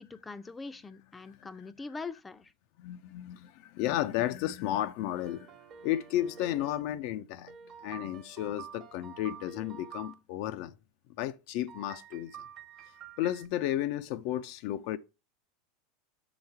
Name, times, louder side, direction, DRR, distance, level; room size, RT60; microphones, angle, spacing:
voice 1, 0.0-2.5, left 4 dB, 15° left, 0.5 m, -42 dB
voice 2, 2.8-5.5 5.8-7.5 7.8-10.7 11.2-12.3 13.2-15.0, left 13 dB, 60° left, 0.5 m, -33 dB
sound 1, 5.1-6.8 7.5-10.1 11.7-13.5, right 8 dB, 40° right, 1.1 m, -49 dB
6.4 x 4.0 x 4.4 m
supercardioid pair, 120°, 0 cm